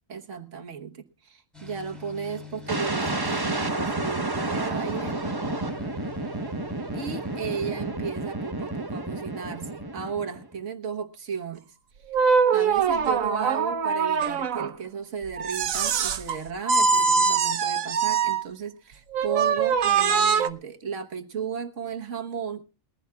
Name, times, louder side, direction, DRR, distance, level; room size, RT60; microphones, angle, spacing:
voice 1, 0.1-5.2 6.9-11.7 12.5-22.6, right 6 dB, 65° right, 5 dB, 1.6 m, -34 dB
sound 1, 1.5-7.9, left 1 dB, ahead, 5.7 m, -44 dB
sound 2, 2.7-10.5, right 2 dB, 20° right, 1.0 m, -31 dB
sound 3, 12.1-14.7 15.4-16.4 16.7-18.4 19.1-20.5, right 5 dB, 85° right, 1.3 m, -23 dB
21.0 x 15.0 x 2.3 m, 0.31 s
omnidirectional pair, 1.4 m